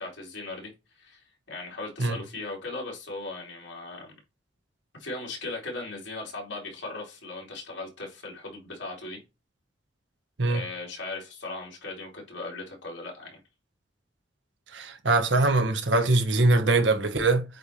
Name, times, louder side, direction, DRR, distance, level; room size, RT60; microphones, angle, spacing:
voice 1, 0.0-4.1 5.0-9.2 10.4-13.4, left 2 dB, 75° left, 3.0 m, -38 dB
voice 2, 14.7-17.4, right 2 dB, 75° right, 1.3 m, -22 dB
8.1 x 3.3 x 4.3 m
head